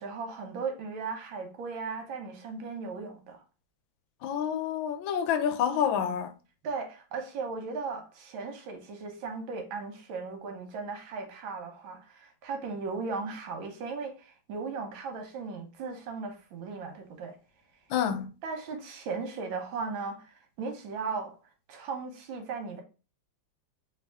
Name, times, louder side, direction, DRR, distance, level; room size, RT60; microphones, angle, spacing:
voice 1, 0.0-3.4 6.6-17.4 18.4-21.4 21.7-22.8, right 4 dB, 80° right, 1.6 m, -37 dB
voice 2, 4.2-6.3 17.9-18.3, left 8 dB, 80° left, 1.3 m, -28 dB
3.5 x 3.0 x 3.3 m
omnidirectional pair, 2.2 m